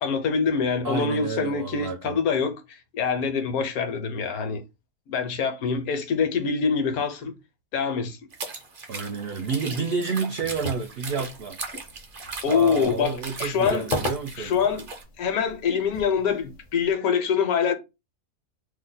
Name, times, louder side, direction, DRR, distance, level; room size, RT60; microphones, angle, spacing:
voice 1, 0.0-4.6 5.1-7.3 7.7-8.2 12.4-13.9 14.4-14.8 15.2-17.7, left 6 dB, 75° left, 1.1 m, -25 dB
voice 2, 0.8-2.2 8.9-11.6 12.5-14.6, right 5 dB, 85° right, 0.5 m, -30 dB
sound 1, 8.3-15.0, right 4 dB, 50° right, 0.7 m, -38 dB
sound 2, 10.4-16.9, left 2 dB, 50° left, 0.6 m, -37 dB
2.8 x 2.1 x 3.9 m
omnidirectional pair, 1.6 m